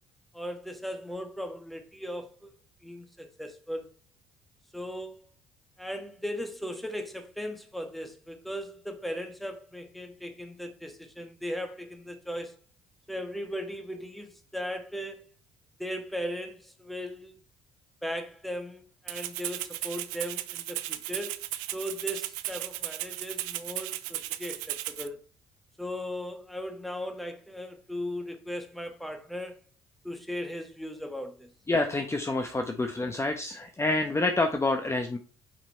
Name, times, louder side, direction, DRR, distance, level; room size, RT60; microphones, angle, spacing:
voice 1, 0.3-2.5 2.8-3.9 4.7-5.2 5.8-12.6 13.1-15.3 15.8-17.4 18.0-21.4 21.7-25.2 25.8-29.6 30.0-31.5, equal, ahead, 1.6 m, -37 dB
Rattle (instrument), 19.1-25.1, right 16 dB, 80° right, 0.5 m, -35 dB
voice 2, 31.7-35.2, left 2 dB, 20° left, 1.0 m, -27 dB
5.7 x 5.6 x 4.4 m
hypercardioid pair, 60°, 14 cm